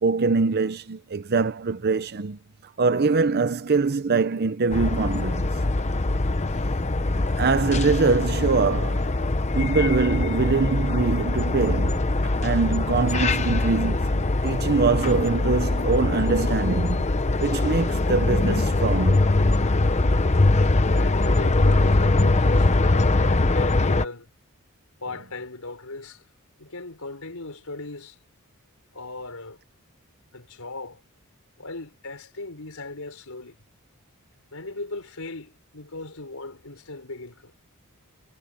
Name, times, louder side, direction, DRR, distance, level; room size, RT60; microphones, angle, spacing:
voice 1, 0.0-2.4 2.8-5.5 7.2-9.2 9.5-17.1 17.4-19.3, right 4 dB, 45° right, 0.7 m, -23 dB
sound 1, 4.7-24.1, left 2 dB, 30° left, 0.9 m, -22 dB
voice 2, 20.9-24.3 25.0-26.3 26.6-28.2 28.9-29.6 30.3-31.0 31.6-33.6 34.5-37.5, left 2 dB, 70° left, 5.3 m, -38 dB
head